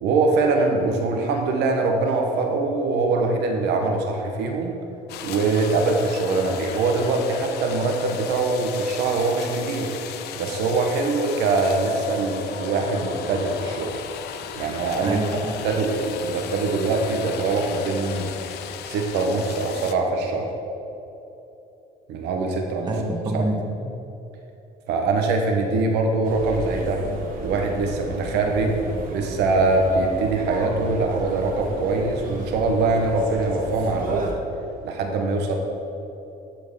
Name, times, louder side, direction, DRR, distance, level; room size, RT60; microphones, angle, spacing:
voice 1, 0.0-4.8 5.2-9.9 10.4-13.9 14.6-15.2 15.6-18.3 18.9-20.5 22.1-23.0 23.3-23.4 24.9-27.0 27.4-34.3 34.8-35.6, right 3 dB, 85° right, 3 dB, 1.1 m, -23 dB
sound 1, 5.1-20.0, left 9 dB, 75° left, 0.6 m, -36 dB
voice 2, 15.0-15.6 22.9-23.9, right 2 dB, 25° right, 2 dB, 1.1 m, -26 dB
sound 2, 26.2-34.3, right 2 dB, 55° right, 1.5 m, -34 dB
11.5 x 4.6 x 5.4 m, 3.0 s
cardioid pair, 110°, 17 cm